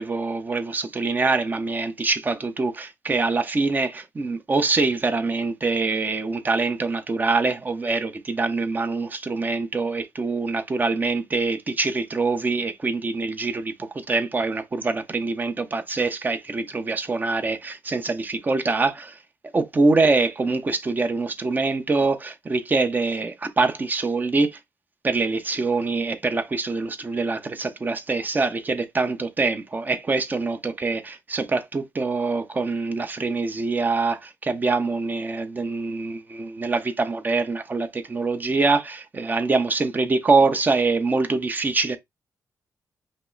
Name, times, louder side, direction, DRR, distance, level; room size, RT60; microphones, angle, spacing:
voice 1, 0.0-19.1 19.5-24.6 25.0-42.0, right 3 dB, 30° right, 0.8 m, -24 dB
5.3 x 2.1 x 3.9 m
cardioid pair, 100°, 6 cm